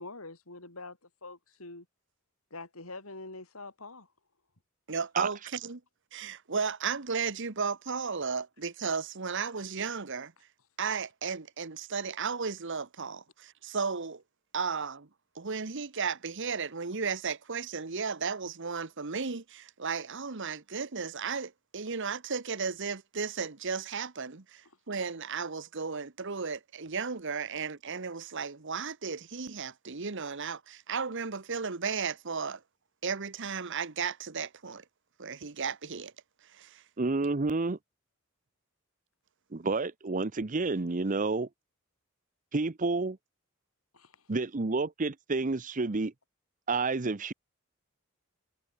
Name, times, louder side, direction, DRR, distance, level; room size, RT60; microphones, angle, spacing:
voice 1, 0.0-1.9 2.5-4.1 43.9-44.3, left 3 dB, 85° left, 6.0 m, -45 dB
voice 2, 4.9-5.8 6.1-10.3 10.8-14.2 14.5-15.1 15.3-32.6 33.0-34.8 35.2-36.1 36.5-36.8, right 5 dB, 60° right, 1.2 m, -34 dB
voice 3, 37.0-37.8 39.5-41.5 42.5-43.2 44.3-46.1 46.7-47.3, right 3 dB, 40° right, 0.8 m, -29 dB
head